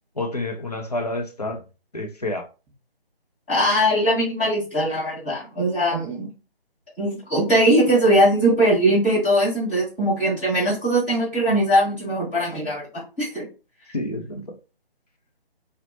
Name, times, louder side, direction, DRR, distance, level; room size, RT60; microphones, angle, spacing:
voice 1, 0.2-1.6 1.9-2.5 13.9-14.6, left 2 dB, 40° left, 0.4 m, -29 dB
voice 2, 3.5-6.3 7.0-13.5, right 1 dB, 10° left, 1.1 m, -20 dB
2.7 x 2.1 x 2.8 m
figure-of-eight pair, 165°, 31 cm